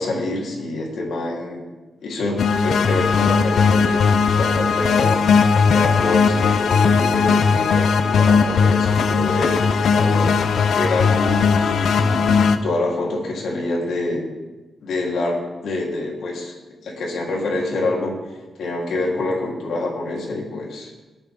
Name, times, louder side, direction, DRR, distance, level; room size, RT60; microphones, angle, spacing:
voice 1, 0.0-1.6 2.0-5.2 5.7-14.2 14.8-16.5 16.8-18.1 18.6-20.9, left 2 dB, 85° left, -3 dB, 3.6 m, -26 dB
sound 1, 2.4-12.6, left 5 dB, 65° left, 0.6 m, -18 dB
20.0 x 8.9 x 3.7 m, 1.1 s
wide cardioid pair, 165°, 0 cm